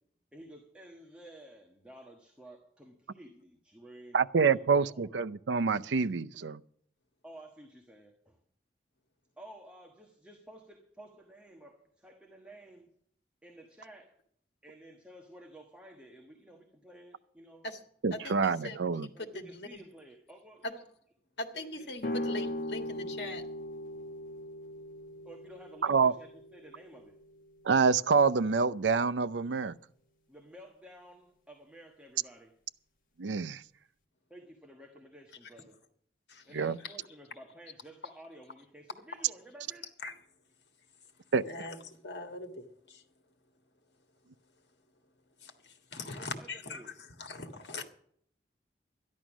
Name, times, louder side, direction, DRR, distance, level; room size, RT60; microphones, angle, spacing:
voice 1, 0.3-5.0 7.2-8.4 9.4-12.9 13.4-14.2 14.6-17.7 19.1-20.9 21.5-22.5 25.2-27.2 30.3-32.5 34.3-35.8 36.5-39.9 46.2-47.0, right 1 dB, 5° right, 1.2 m, -53 dB
voice 2, 4.1-6.6 18.0-19.1 25.8-26.1 27.6-29.7 33.2-33.6 36.5-36.8 41.3-41.4, right 5 dB, 85° right, 0.5 m, -27 dB
voice 3, 18.2-18.8 19.0-19.8 20.6-20.7 21.4-23.4 36.3-36.4 40.0-40.1 41.5-43.0 45.4-45.5 45.9-46.9 47.2-47.9, left 2 dB, 75° left, 1.7 m, -41 dB
sound 1, 22.0-27.7, left 1 dB, 50° left, 1.3 m, -39 dB
12.5 x 11.0 x 6.1 m
head